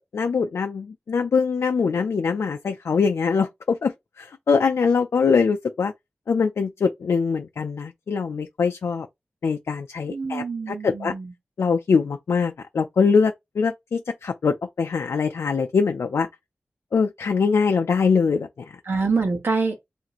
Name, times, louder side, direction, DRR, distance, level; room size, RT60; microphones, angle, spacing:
voice 1, 0.0-3.9 4.2-5.9 6.3-9.1 9.4-11.1 11.6-16.3 16.9-18.7, left 5 dB, 85° left, 0.4 m, -23 dB
voice 2, 10.1-11.3 18.9-19.9, right 4 dB, 60° right, 1.0 m, -25 dB
3.0 x 2.6 x 4.0 m
wide cardioid pair, 100°, 4 cm